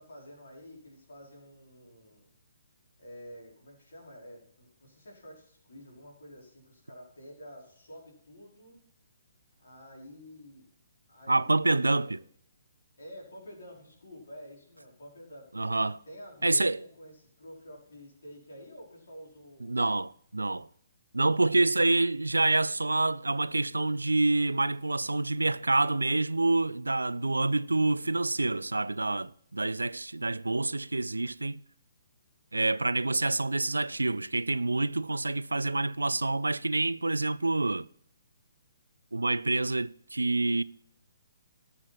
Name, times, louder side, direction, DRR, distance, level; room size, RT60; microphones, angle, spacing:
voice 1, 0.0-2.3 3.0-8.8 9.6-10.6 11.1-12.2 13.0-15.5 16.1-19.9 21.1-21.7, equal, 60° left, 5.0 m, -49 dB
voice 2, 11.3-12.2 15.5-16.0 16.4-16.8 19.6-20.7 21.1-31.6 32.5-37.9 39.1-40.6, right 2 dB, 75° right, 0.4 m, -27 dB
18.5 x 7.4 x 4.3 m
figure-of-eight pair, 130°, 0 cm